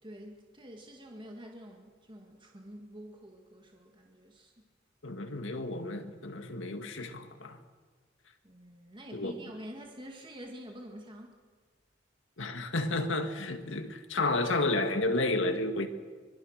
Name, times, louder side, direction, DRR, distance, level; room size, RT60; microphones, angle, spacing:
voice 1, 0.0-4.5 8.4-11.4, equal, 25° right, 1 dB, 1.9 m, -47 dB
voice 2, 5.0-7.6 9.1-9.3 12.4-15.9, left 2 dB, 70° left, 6 dB, 2.0 m, -31 dB
24.5 x 22.0 x 6.6 m, 1.5 s
head